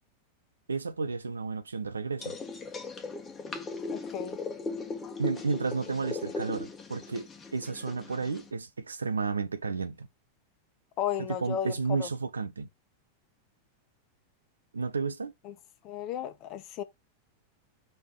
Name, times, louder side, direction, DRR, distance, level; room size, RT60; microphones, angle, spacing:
voice 1, 0.7-2.4 5.2-10.1 11.2-12.7 14.7-15.3, right 4 dB, 75° right, 0.8 m, -32 dB
sound 1, 2.2-8.5, left 3 dB, 20° left, 1.5 m, -38 dB
voice 2, 3.9-4.4 11.0-12.1 15.4-15.5 15.8-16.8, left 10 dB, 40° left, 1.1 m, -34 dB
5.5 x 3.6 x 5.8 m
figure-of-eight pair, 90°, 0 cm